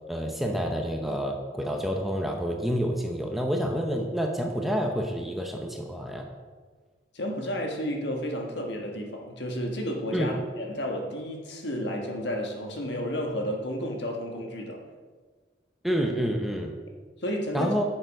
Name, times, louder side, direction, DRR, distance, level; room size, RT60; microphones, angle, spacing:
voice 1, 0.1-6.3 10.1-10.4 15.8-16.8 17.5-17.8, equal, ahead, 2 dB, 0.7 m, -28 dB
voice 2, 7.1-14.9 17.2-17.8, equal, 65° left, 2 dB, 1.5 m, -32 dB
10.5 x 6.9 x 4.7 m, 1.5 s
head